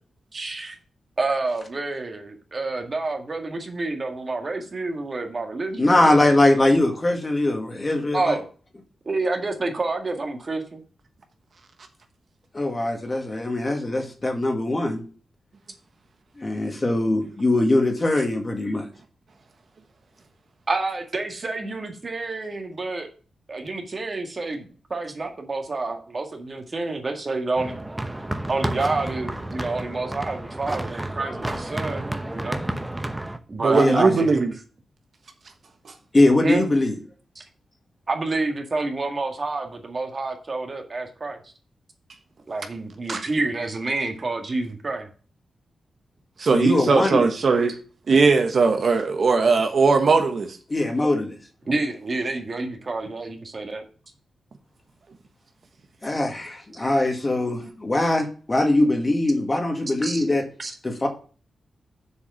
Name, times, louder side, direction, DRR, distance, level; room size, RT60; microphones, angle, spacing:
voice 1, 0.3-0.8 1.2-6.2 8.1-8.5 9.1-10.8 18.1-18.3 20.7-23.1 23.5-27.7 28.5-32.6 33.5-34.5 36.4-36.6 37.4-37.5 38.1-41.5 42.5-45.1 51.7-53.8 60.0-60.2 60.6-60.7, right 3 dB, 40° right, 3 dB, 1.9 m, -28 dB
voice 2, 5.8-8.4 12.5-15.0 16.4-18.9 33.7-34.0 36.1-36.9 46.5-47.2 50.7-51.3 56.0-60.4 60.8-61.1, left 2 dB, 30° left, 3 dB, 2.0 m, -21 dB
sound 1, 27.6-33.4, right 1 dB, 15° right, 0.9 m, -31 dB
voice 3, 33.6-34.5 35.8-35.9 43.1-43.2 46.4-47.8 48.1-50.6, right 4 dB, 60° right, 5 dB, 1.3 m, -19 dB
7.1 x 4.9 x 7.0 m, 0.39 s
cardioid pair, 90°, 0 cm